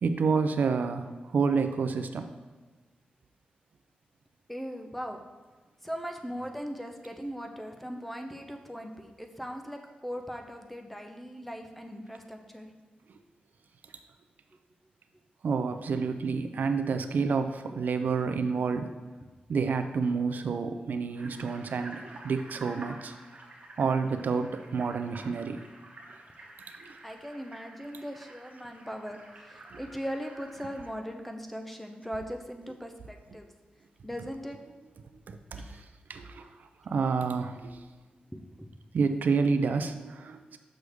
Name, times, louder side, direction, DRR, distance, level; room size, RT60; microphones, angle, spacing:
voice 1, 0.0-2.3 15.4-18.9 19.5-23.1 23.8-25.6 26.8-27.0 29.7-29.8 35.3-35.8 36.1-36.5 36.9-37.8 38.9-40.6, right 5 dB, 70° right, 8 dB, 0.4 m, -29 dB
voice 2, 4.5-5.2 5.8-12.7 27.0-33.5 34.0-34.6 35.6-35.8 38.3-38.7, equal, 5° left, 3 dB, 0.6 m, -39 dB
sound 1, 21.1-30.9, right 2 dB, 50° right, 1.2 m, -49 dB
6.5 x 6.1 x 3.5 m, 1.3 s
wide cardioid pair, 140°, 3 cm